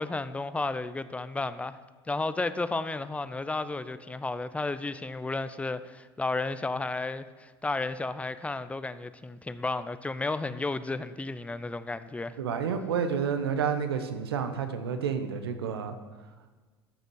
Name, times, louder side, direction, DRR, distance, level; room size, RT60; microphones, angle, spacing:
voice 1, 0.0-1.8 2.1-12.4, left 3 dB, 10° left, 13 dB, 0.5 m, -33 dB
voice 2, 12.4-15.9, right 7 dB, 80° right, 8 dB, 1.0 m, -30 dB
14.0 x 6.5 x 4.8 m, 1.4 s
hypercardioid pair, 80°, 13 cm